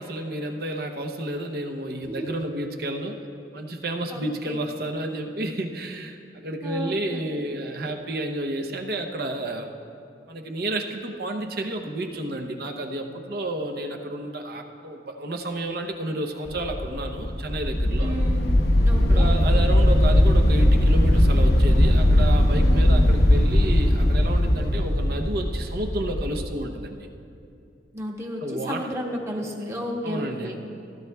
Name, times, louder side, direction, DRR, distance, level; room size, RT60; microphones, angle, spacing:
voice 1, 0.0-3.3 3.5-9.7 10.3-18.2 19.1-27.1 28.4-28.9 30.0-30.5, right 1 dB, 60° right, 3 dB, 0.8 m, -31 dB
voice 2, 4.1-4.6 6.6-7.4 18.0-18.5 18.8-19.3 22.5-23.0 27.9-30.6, equal, 15° right, 0 dB, 1.0 m, -33 dB
sound 1, 16.5-26.4, left 1 dB, 60° left, 0.9 m, -19 dB
16.0 x 12.0 x 2.3 m, 2.5 s
head